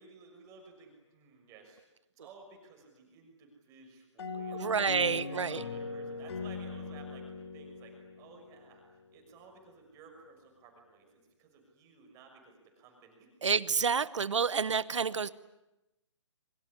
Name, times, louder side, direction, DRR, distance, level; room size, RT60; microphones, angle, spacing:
voice 1, 0.0-7.3 7.5-13.3 14.6-14.7, right 4 dB, 20° right, 2 dB, 6.1 m, -56 dB
sound 1, 4.2-8.8, left 4 dB, 55° left, 2.7 m, -40 dB
voice 2, 4.5-5.6 13.4-15.3, right 6 dB, 75° right, 17 dB, 1.0 m, -29 dB
25.5 x 23.5 x 9.9 m, 0.97 s
hypercardioid pair, 150°, 16 cm